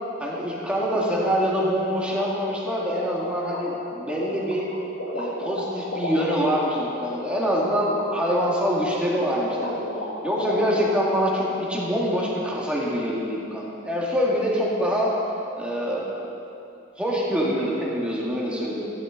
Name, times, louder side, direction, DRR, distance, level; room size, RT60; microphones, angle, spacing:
voice 1, 0.2-4.7 5.1-9.8 10.2-15.1 15.6-16.1 17.0-18.9, equal, 5° right, -5 dB, 2.0 m, -25 dB
sound 1, 1.8-10.9, left 1 dB, 85° left, 1.9 m, -33 dB
15.0 x 12.0 x 3.9 m, 2.8 s
head